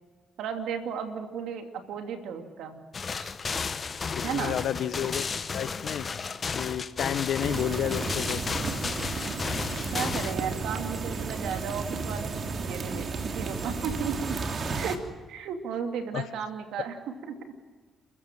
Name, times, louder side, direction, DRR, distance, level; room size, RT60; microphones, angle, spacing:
voice 1, 0.4-2.8 3.1-3.3 4.2-4.6 9.9-14.4 14.7-15.0 15.3-17.3, right 7 dB, 85° right, 5 dB, 2.8 m, -34 dB
sound 1, 2.9-10.3, left 5 dB, 40° left, 1.2 m, -33 dB
voice 2, 4.1-5.2 5.5-6.0 6.5-8.4 16.1-16.2, left 10 dB, 70° left, 14 dB, 1.1 m, -30 dB
sound 2, 7.4-15.0, right 4 dB, 45° right, 2.7 m, -33 dB
29.0 x 15.0 x 7.5 m, 1.4 s
cardioid pair, 90°, 0 cm